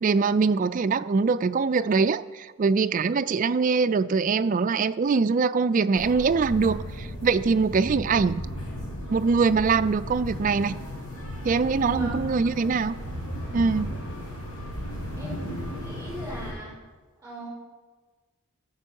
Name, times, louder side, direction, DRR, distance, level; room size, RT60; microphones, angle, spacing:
voice 1, 0.0-8.5 9.1-10.7 11.4-13.0 13.5-13.9, right 4 dB, 35° right, 13 dB, 0.3 m, -23 dB
sound 1, 5.9-16.5, equal, 80° left, 3.4 m, -35 dB
voice 2, 11.8-12.1 15.2-16.7 17.2-17.5, right 1 dB, 10° right, -5 dB, 4.4 m, -39 dB
15.0 x 5.4 x 7.0 m, 1.4 s
head